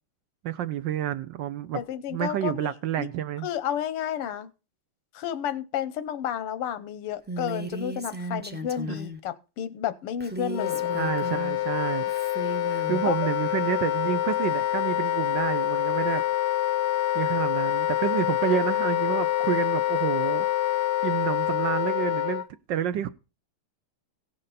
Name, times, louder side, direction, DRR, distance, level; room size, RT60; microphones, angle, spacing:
voice 1, 0.4-1.8 2.1-3.5 8.9-9.0 10.9-12.1 12.9-16.2 17.1-20.7 21.0-22.4 22.7-23.1, right 10 dB, 70° right, 1.2 m, -29 dB
voice 2, 1.7-2.7 3.0-3.1 3.4-4.5 5.1-10.9 13.1-13.2, left 9 dB, 90° left, 1.8 m, -31 dB
Female speech woman speaking, 7.3-9.2 10.2-11.6 12.1-13.0, right 1 dB, 10° right, 0.4 m, -35 dB
Wind instrument woodwind instrument, 10.5-22.4, left 13 dB, 65° left, 1.2 m, -26 dB
17.0 x 6.5 x 4.1 m
omnidirectional pair, 2.4 m